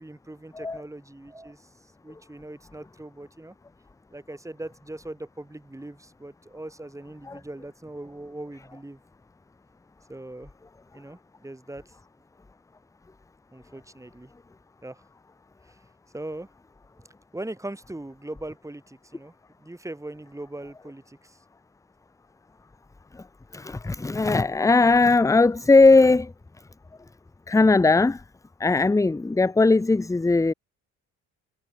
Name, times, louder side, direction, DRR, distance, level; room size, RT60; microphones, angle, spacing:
voice 1, 0.0-1.7 2.0-3.6 4.1-9.0 10.1-10.5 10.9-11.8 13.5-14.3 14.8-15.0 15.7-15.8 16.1-16.5 17.3-21.4, right 1 dB, 10° right, 3.8 m, -40 dB
voice 2, 23.5-26.3 27.5-28.2 28.6-30.5, left 3 dB, 10° left, 0.6 m, -19 dB
cardioid pair, 90°, 30 cm